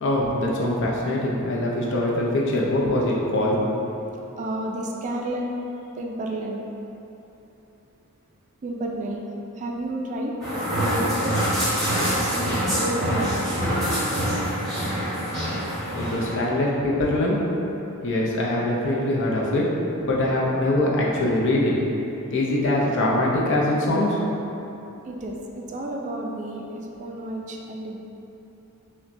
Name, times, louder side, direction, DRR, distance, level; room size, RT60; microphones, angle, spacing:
voice 1, 0.0-3.6 4.0-4.1 15.9-17.4 18.0-19.7 20.0-21.7 22.3-24.2, left 1 dB, 60° left, -4 dB, 0.6 m, -23 dB
voice 2, 4.4-5.5 6.0-6.7 8.6-9.2 9.5-10.5 10.7-11.3 12.2-13.7 25.0-28.0, right 1 dB, 35° right, 0 dB, 0.3 m, -31 dB
sound 1, 10.4-16.3, equal, ahead, 1.1 m, -25 dB
5.7 x 2.2 x 2.6 m, 3.0 s
head